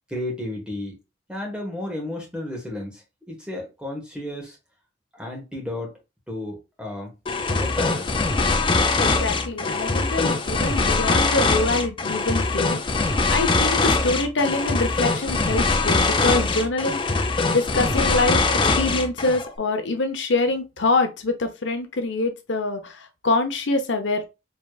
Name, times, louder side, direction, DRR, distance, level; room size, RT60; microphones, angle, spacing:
voice 1, 0.1-1.0 1.3-4.6 5.1-6.0 6.3-7.1 7.5-8.1, left 1 dB, 5° right, 1.4 m, -33 dB
sound 1, 7.3-19.5, left 3 dB, 25° left, 0.5 m, -22 dB
voice 2, 9.0-12.8 13.3-24.3, left 3 dB, 80° left, 0.8 m, -25 dB
4.9 x 3.2 x 2.3 m
head